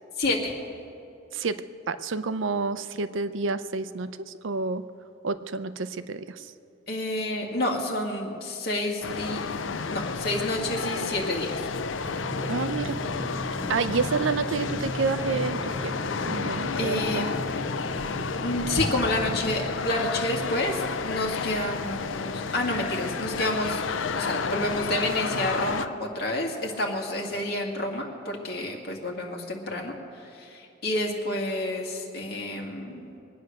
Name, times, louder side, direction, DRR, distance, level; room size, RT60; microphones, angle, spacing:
voice 1, 0.2-0.5 6.9-9.4 9.9-11.6 16.8-17.3 18.4-23.8 24.1-33.1, left 1 dB, 55° left, 1 dB, 2.2 m, -29 dB
voice 2, 1.3-4.8 5.2-6.5 12.5-13.0 13.7-15.9 16.2-17.3, right 4 dB, 80° right, 13 dB, 0.6 m, -29 dB
sound 1, 9.0-25.9, left 5 dB, 90° left, 0.6 m, -31 dB
sound 2, 12.0-19.5, right 1 dB, 5° right, 1.3 m, -36 dB
23.0 x 9.4 x 6.6 m, 2.7 s
head